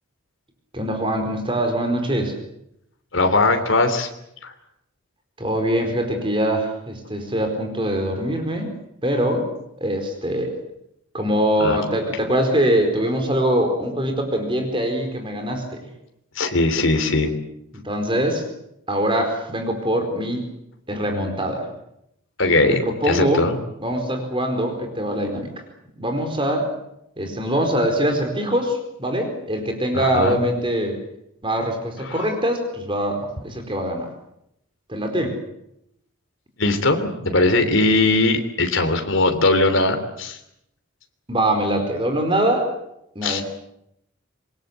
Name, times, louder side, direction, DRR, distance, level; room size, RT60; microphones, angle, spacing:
voice 1, 0.7-2.3 5.4-8.7 9.0-9.5 9.8-10.6 11.1-15.9 17.7-18.5 18.9-20.4 20.9-21.7 22.8-23.4 23.8-25.5 26.0-26.7 27.2-31.0 31.4-34.1 34.9-35.4 41.3-42.7 43.1-43.4, right 1 dB, 25° right, 5 dB, 4.6 m, -23 dB
voice 2, 3.1-4.1 4.4-4.5 11.6-11.8 16.3-17.4 22.4-22.8 23.1-23.6 29.9-30.4 36.6-40.4 43.2-43.4, left 2 dB, 65° left, 5 dB, 3.2 m, -19 dB
26.5 x 21.5 x 8.2 m, 0.78 s
head